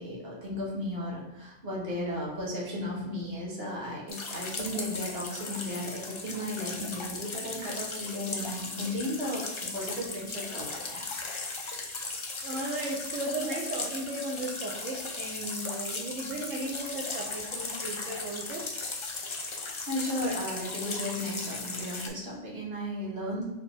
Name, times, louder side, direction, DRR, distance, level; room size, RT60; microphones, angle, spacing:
voice 1, 0.0-11.1 19.9-23.4, left 1 dB, 55° right, -4 dB, 1.5 m, -35 dB
sound 1, 4.1-22.1, left 3 dB, 50° left, 0.3 m, -37 dB
voice 2, 12.4-18.6, right 2 dB, 90° right, -2 dB, 1.1 m, -35 dB
4.3 x 2.9 x 3.4 m, 0.99 s
omnidirectional pair, 1.3 m